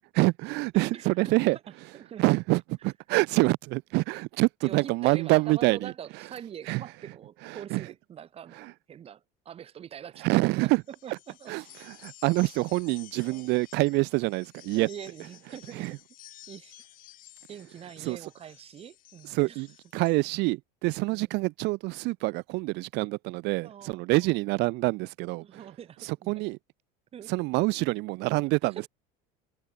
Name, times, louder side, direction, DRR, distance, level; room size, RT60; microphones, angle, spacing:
voice 1, 0.1-1.6 2.2-5.9 6.7-6.8 7.4-7.8 8.6-8.7 10.2-10.8 11.5-14.9 15.7-15.9 18.0-18.2 19.3-19.7 19.9-25.4 26.0-26.6 27.3-28.8, right 23 dB, 55° right, 1.1 m, -26 dB
voice 2, 0.7-1.5 1.9-2.3 4.6-10.5 11.0-11.5 13.2-13.4 14.7-16.0 16.5-16.9 17.5-19.6 21.1-21.3 23.6-24.4 25.4-26.4 27.1-27.3 28.6-28.9, right 9 dB, 30° right, 4.8 m, -44 dB
sound 1, 10.8-20.2, left 15 dB, 45° left, 4.3 m, -53 dB
cardioid pair, 165°, 20 cm